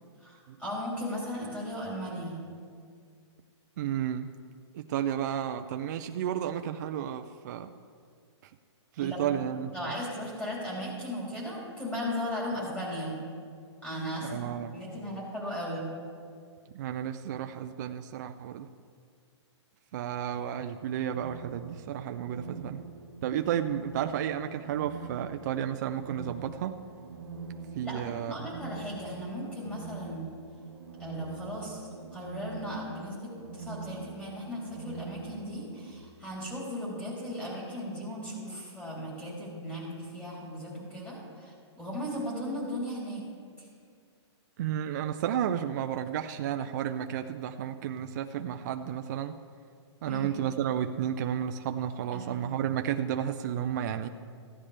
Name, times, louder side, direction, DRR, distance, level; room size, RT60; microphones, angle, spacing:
voice 1, 0.2-2.4 9.0-9.3 9.7-13.3 13.8-16.0 27.8-30.3 31.0-43.3 43.6-43.7 50.0-50.4 52.1-52.5, equal, 5° left, -6 dB, 3.2 m, -37 dB
voice 2, 3.8-4.3 4.7-7.7 8.9-9.9 14.2-14.8 16.7-18.7 19.9-22.8 23.2-26.8 27.7-28.5 44.6-49.4 50.0-54.1, right 10 dB, 40° right, 7 dB, 0.3 m, -32 dB
sound 1, 20.7-35.9, right 4 dB, 70° right, 1.1 m, -44 dB
15.0 x 9.9 x 3.3 m, 2.2 s
hypercardioid pair, 155°, 15 cm